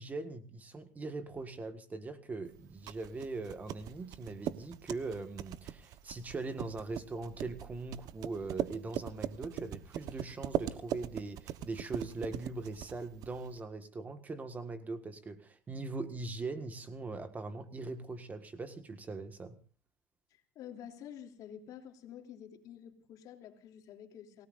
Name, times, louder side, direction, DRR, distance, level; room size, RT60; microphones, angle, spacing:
voice 1, 0.0-19.6, right 3 dB, 20° right, 1.7 m, -41 dB
sound 1, 2.5-13.6, right 11 dB, 55° right, 1.1 m, -40 dB
voice 2, 20.3-24.5, left 9 dB, 55° left, 3.1 m, -49 dB
29.0 x 17.5 x 2.6 m
supercardioid pair, 125°, 8 cm